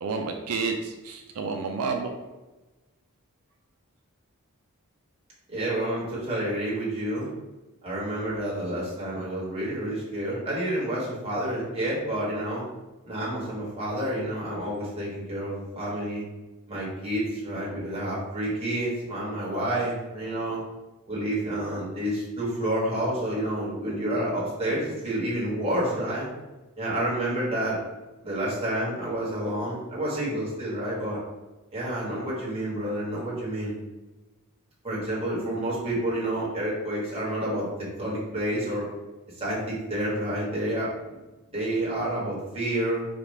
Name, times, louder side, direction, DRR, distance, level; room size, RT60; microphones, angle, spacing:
voice 1, 0.0-2.2, right 4 dB, 90° right, 3 dB, 0.4 m, -30 dB
voice 2, 5.5-7.3 7.8-12.6 13.0-16.3 16.7-20.6 21.1-26.3 26.8-27.8 28.2-31.2 31.7-33.8 34.8-37.7 38.0-38.9 39.4-41.1 41.5-43.1, right 1 dB, 25° right, -7 dB, 1.5 m, -29 dB
5.0 x 2.3 x 3.2 m, 1.1 s
head